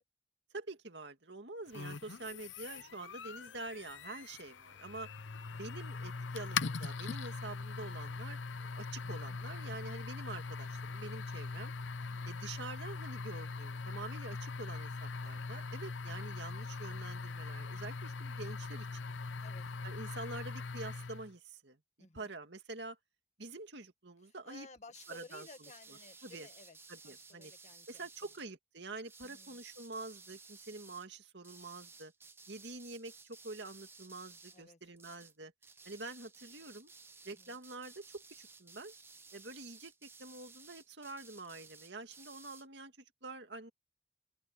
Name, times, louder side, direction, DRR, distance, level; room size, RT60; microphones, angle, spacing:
voice 1, 0.5-5.1 5.5-11.7 12.3-19.0 19.8-21.8 22.1-23.0 23.4-24.7 25.1-25.5 26.2-26.5 26.9-27.5 27.9-32.1 32.5-35.5 35.9-36.9 37.2-38.9 39.3-43.7, right 3 dB, 65° right, 2.3 m, -47 dB
sound 1, 1.7-21.3, left 4 dB, 80° left, 0.7 m, -41 dB
voice 2, 12.0-12.3 19.4-19.7 22.0-22.3 24.3-26.8 27.0-28.3 29.2-29.6 34.5-34.8 37.3-37.6, left 3 dB, 35° left, 1.7 m, -56 dB
sound 2, 24.9-28.4 29.0-31.1 31.4-34.6 35.0-35.4 35.6-42.7, right 4 dB, 10° right, 0.7 m, -56 dB
open air
head